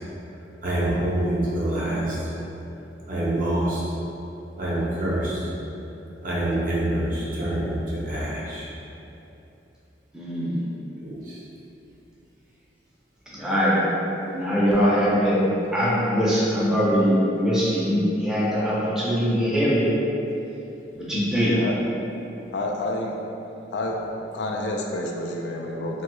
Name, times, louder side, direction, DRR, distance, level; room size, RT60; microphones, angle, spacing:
voice 1, 0.6-2.2 3.1-3.8 4.6-5.4 6.2-8.7 11.0-11.4, right 1 dB, 45° right, -7 dB, 0.6 m, -26 dB
voice 2, 10.1-10.6 13.3-13.8 14.3-15.4 15.7-19.9 20.9-21.5, equal, 5° right, -9 dB, 0.5 m, -22 dB
voice 3, 22.5-23.2 23.7-26.0, left 1 dB, 70° left, 0 dB, 0.3 m, -29 dB
3.0 x 2.3 x 2.9 m, 2.9 s
head